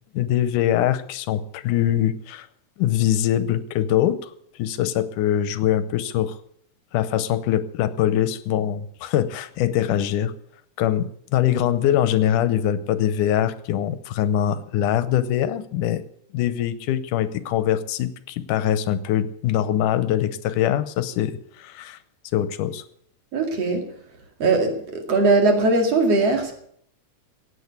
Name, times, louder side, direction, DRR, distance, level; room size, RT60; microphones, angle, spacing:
voice 1, 0.1-2.5 2.8-4.3 4.6-6.4 6.9-10.3 10.8-16.0 16.3-22.0 22.3-22.8, left 11 dB, 85° left, 14 dB, 2.4 m, -23 dB
voice 2, 23.3-23.9 24.4-26.5, right 3 dB, 55° right, 4 dB, 3.3 m, -20 dB
16.5 x 8.9 x 8.2 m, 0.66 s
omnidirectional pair, 3.6 m